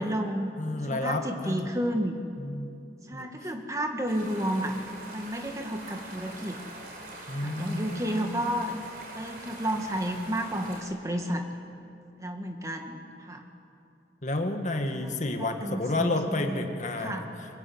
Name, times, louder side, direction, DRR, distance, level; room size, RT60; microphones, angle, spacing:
voice 1, 0.0-0.5 0.8-2.2 3.1-4.8 5.1-6.6 7.4-8.7 9.1-11.4 12.2-13.4 14.9-15.1 15.4-16.7 17.0-17.3, equal, 20° right, 3 dB, 2.0 m, -31 dB
voice 2, 0.6-1.7 2.4-2.7 3.1-3.5 7.3-8.4 14.2-17.5, left 2 dB, 45° left, 5 dB, 1.9 m, -31 dB
sound 1, 4.1-10.8, right 1 dB, 55° right, 5.8 m, -43 dB
23.5 x 22.5 x 9.6 m, 2.6 s
head